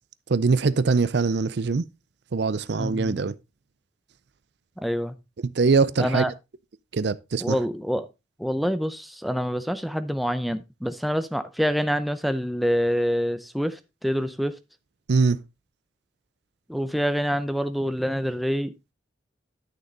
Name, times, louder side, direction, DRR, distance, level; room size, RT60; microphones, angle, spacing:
voice 1, 0.3-1.8 2.3-3.3 5.6-6.2 6.9-7.6 15.1-15.4, right 4 dB, 60° right, 0.5 m, -22 dB
voice 2, 2.8-3.3 4.8-5.2 6.0-6.3 7.4-8.1 8.4-14.6 16.7-18.7, equal, ahead, 0.6 m, -26 dB
11.0 x 6.6 x 3.9 m
head